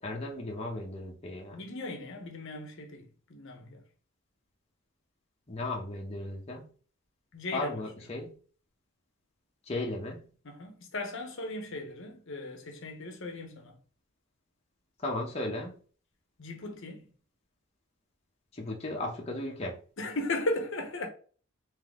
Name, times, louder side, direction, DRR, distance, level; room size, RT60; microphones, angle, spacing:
voice 1, 0.0-1.6 5.5-6.6 7.5-8.3 9.7-10.2 15.0-15.7 18.5-19.7, left 2 dB, 30° left, 0.8 m, -35 dB
voice 2, 1.5-3.8 7.3-7.8 10.4-13.8 16.4-17.0 20.0-21.1, left 2 dB, 60° left, 0.8 m, -37 dB
3.9 x 2.7 x 3.5 m
head